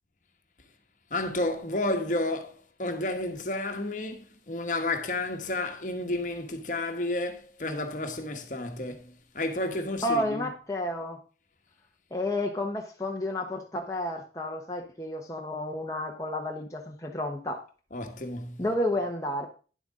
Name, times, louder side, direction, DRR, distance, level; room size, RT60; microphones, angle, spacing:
voice 1, 1.1-10.5 17.9-18.6, left 2 dB, 45° left, 1.2 m, -31 dB
voice 2, 10.0-11.2 12.1-17.6 18.6-19.5, left 1 dB, 20° left, 0.9 m, -31 dB
10.5 x 7.9 x 3.7 m
head